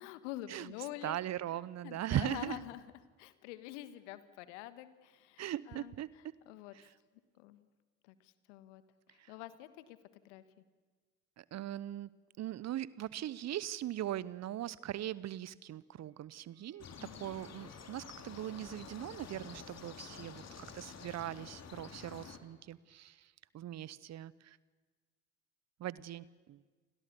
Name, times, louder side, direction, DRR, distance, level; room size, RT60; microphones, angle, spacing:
voice 1, 0.0-1.2 1.5-2.8 3.2-5.9 6.4-6.9 7.3-7.7 8.0-8.8 9.1-10.0 10.2-10.4 17.0-17.4, left 14 dB, 70° left, 13 dB, 1.6 m, -47 dB
voice 2, 1.0-2.6 5.4-6.1 6.7-6.8 9.2-9.3 11.4-12.1 12.4-16.9 17.2-24.6 25.8-26.6, right 12 dB, 45° right, 20 dB, 0.9 m, -40 dB
sound 1, 16.0-21.4, right 2 dB, 75° right, 5.3 m, -70 dB
sound 2, 16.8-22.4, left 6 dB, 45° left, 3.0 m, -50 dB
29.0 x 23.0 x 7.0 m, 1.4 s
hypercardioid pair, 55°, 37 cm